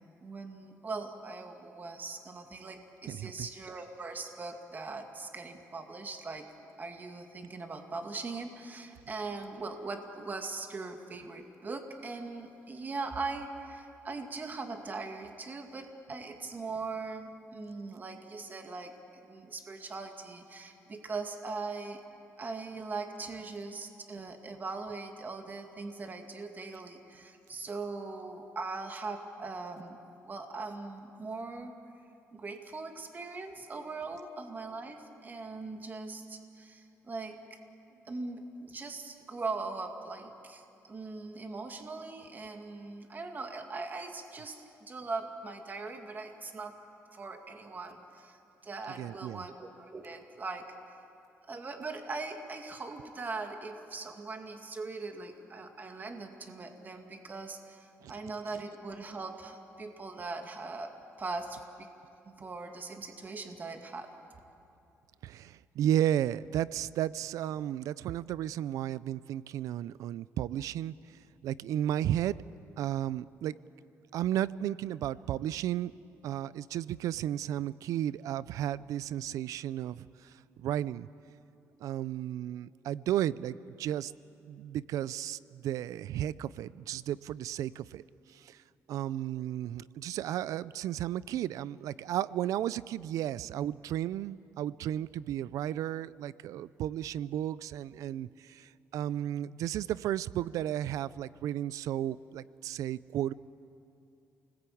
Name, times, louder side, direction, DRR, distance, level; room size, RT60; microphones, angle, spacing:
voice 1, 0.0-6.5 6.8-22.0 22.4-31.7 32.3-37.6 38.1-46.8 47.1-51.0 51.5-61.9 62.2-64.1, right 3 dB, 35° right, 4 dB, 2.2 m, -40 dB
voice 2, 3.1-3.5 49.0-49.4 58.0-58.1 65.2-70.9 71.4-72.4 72.8-73.5 74.1-75.9 76.2-80.3 80.6-81.1 81.8-84.1 84.5-88.0 88.3-88.6 88.9-103.3, right 11 dB, 85° right, 19 dB, 0.5 m, -33 dB
28.5 x 20.5 x 8.6 m, 2.7 s
cardioid pair, 110°, 6 cm